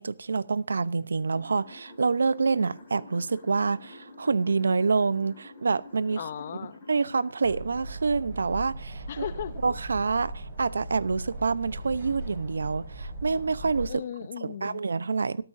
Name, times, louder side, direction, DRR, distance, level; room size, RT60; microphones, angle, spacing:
voice 1, 0.0-6.3 6.9-9.3 9.6-14.0 14.4-15.4, right 4 dB, 90° right, 0.7 m, -27 dB
sound 1, 1.3-7.6, left 2 dB, 15° left, 4.3 m, -49 dB
voice 2, 6.2-6.8 9.1-9.6 13.9-14.8, left 9 dB, 35° left, 0.5 m, -36 dB
sound 2, 7.4-13.9, right 1 dB, 25° right, 5.2 m, -38 dB
25.0 x 8.9 x 2.6 m
hypercardioid pair, 175°, 0 cm